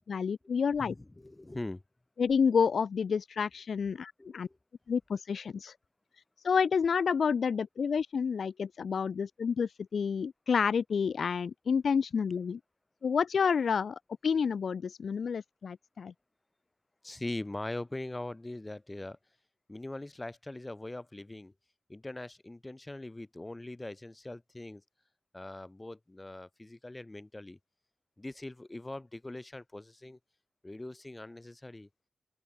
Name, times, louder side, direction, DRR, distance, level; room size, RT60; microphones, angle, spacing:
voice 1, 0.1-0.9 2.2-4.5 4.9-5.7 6.4-12.6 13.0-16.1, left 6 dB, 75° left, 0.4 m, -29 dB
voice 2, 0.8-1.8 4.2-4.6 17.0-19.2 19.7-21.5 21.9-24.8 25.3-27.6 28.2-30.2 30.6-31.9, left 2 dB, 25° left, 3.1 m, -41 dB
open air
cardioid pair, 45°, 0 cm